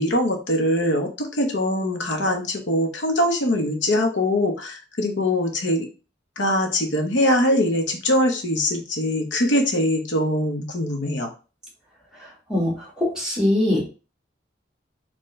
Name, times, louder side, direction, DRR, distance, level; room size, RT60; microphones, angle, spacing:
voice 1, 0.0-5.9 6.4-11.3, left 1 dB, 85° left, 3 dB, 0.9 m, -22 dB
voice 2, 12.2-13.8, left 1 dB, 5° right, -3 dB, 1.6 m, -23 dB
4.4 x 3.0 x 3.1 m, 0.34 s
head